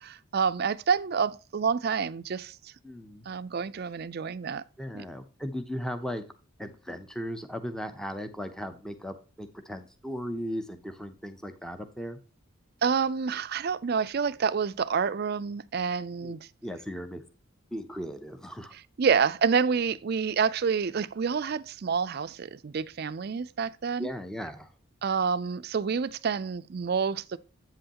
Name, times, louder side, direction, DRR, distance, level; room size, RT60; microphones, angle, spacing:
voice 1, 0.0-2.7 3.3-4.6 4.9-5.0 12.8-16.4 18.7-24.1 25.0-27.4, right 6 dB, 50° right, 0.4 m, -28 dB
voice 2, 2.8-3.3 4.8-6.2 6.6-12.2 16.2-17.2 17.7-18.7 24.0-24.7, equal, 5° left, 0.6 m, -37 dB
8.3 x 7.8 x 2.9 m
head